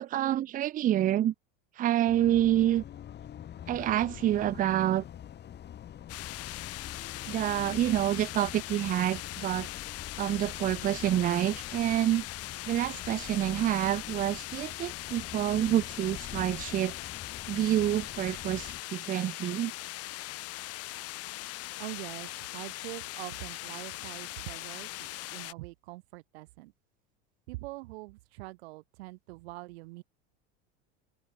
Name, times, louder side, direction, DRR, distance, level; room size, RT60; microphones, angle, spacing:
voice 1, 0.0-1.3 1.8-2.8 3.7-5.0 7.3-9.7 10.2-12.2 12.7-16.9 17.5-19.7, right 12 dB, 25° right, 0.5 m, -28 dB
sound 1, 2.0-18.8, left 10 dB, 35° left, 4.4 m, -45 dB
sound 2, 6.1-25.5, left 18 dB, 50° left, 2.7 m, -40 dB
voice 2, 21.8-26.7 27.5-30.0, right 22 dB, 80° right, 5.1 m, -44 dB
open air
supercardioid pair, 130°, 31 cm